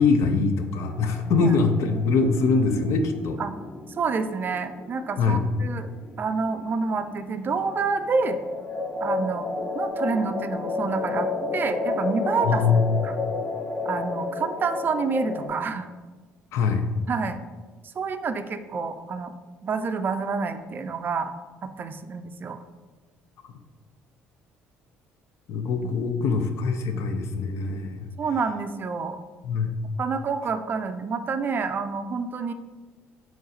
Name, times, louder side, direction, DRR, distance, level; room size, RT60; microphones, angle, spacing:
voice 1, 0.0-3.4 5.2-5.5 12.5-13.0 16.5-16.9 25.5-28.1 29.4-29.7, left 4 dB, 70° left, 7 dB, 0.5 m, -23 dB
sound 1, 0.8-15.5, left 3 dB, 30° left, 0.9 m, -32 dB
voice 2, 3.9-5.9 6.2-8.4 9.0-13.2 13.8-15.9 17.1-17.4 17.8-19.3 19.6-21.3 21.6-22.6 25.8-25.9 26.9-27.0 28.2-29.2 30.0-32.5, right 4 dB, 40° right, 9 dB, 0.3 m, -28 dB
4.0 x 3.2 x 3.9 m, 1.3 s
supercardioid pair, 80°, 5 cm